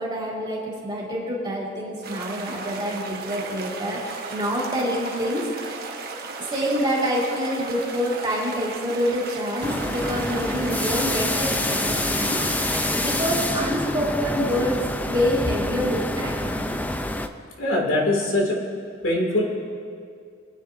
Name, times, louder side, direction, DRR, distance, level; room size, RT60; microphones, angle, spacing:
voice 1, 0.0-5.8 6.4-16.4, equal, 25° right, -5 dB, 2.6 m, -27 dB
sound 1, 2.0-13.3, right 4 dB, 50° right, 1.1 m, -35 dB
sound 2, 9.6-17.3, left 1 dB, 10° left, 0.4 m, -26 dB
voice 2, 17.6-18.6 19.0-19.5, left 1 dB, 85° left, -1 dB, 2.2 m, -22 dB
25.5 x 9.7 x 2.6 m, 2.3 s
head